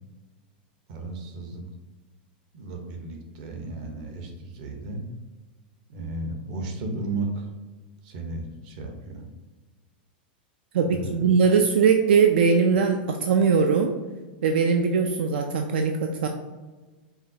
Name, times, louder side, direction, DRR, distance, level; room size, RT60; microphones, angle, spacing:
voice 1, 0.9-1.6 2.5-5.0 5.9-7.5 8.0-9.2 10.8-11.3, right 2 dB, 50° right, 4 dB, 0.9 m, -34 dB
voice 2, 10.7-13.9 14.4-16.3, right 5 dB, 85° right, 4 dB, 0.4 m, -21 dB
4.9 x 3.2 x 2.7 m, 1.3 s
supercardioid pair, 155°, 5 cm